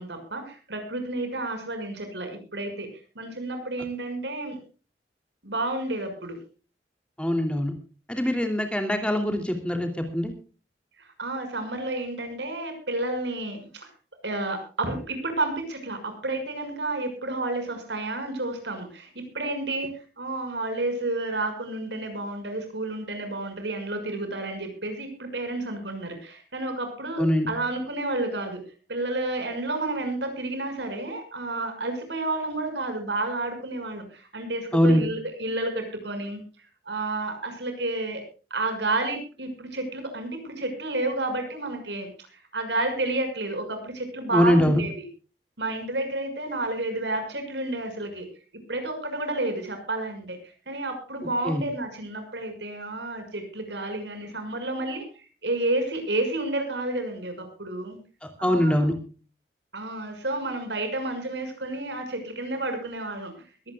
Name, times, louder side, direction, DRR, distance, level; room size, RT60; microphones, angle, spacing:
voice 1, 0.0-4.6 5.4-6.4 11.0-13.9 14.2-28.6 28.9-38.2 38.5-45.1 45.6-48.3 48.7-50.4 50.7-58.0 58.4-58.8 59.7-63.5, right 2 dB, 80° right, 7 dB, 6.2 m, -31 dB
voice 2, 7.2-7.7 8.1-10.3 27.2-27.5 34.7-35.1 44.3-44.8 51.4-51.6 58.2-58.9, equal, 5° left, 5 dB, 2.9 m, -23 dB
22.0 x 17.0 x 2.4 m, 0.36 s
head